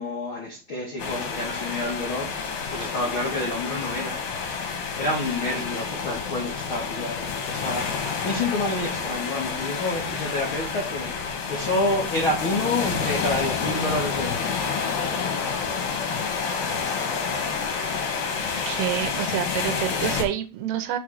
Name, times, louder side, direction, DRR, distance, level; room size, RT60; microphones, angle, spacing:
voice 1, 0.0-4.2 4.9-7.8 8.2-14.6, left 2 dB, 80° left, 1.1 m, -29 dB
sound 1, 1.0-20.2, left 5 dB, 60° left, 3.0 m, -29 dB
voice 2, 18.7-21.0, right 11 dB, 75° right, 2.7 m, -28 dB
7.0 x 3.6 x 6.4 m
omnidirectional pair, 5.3 m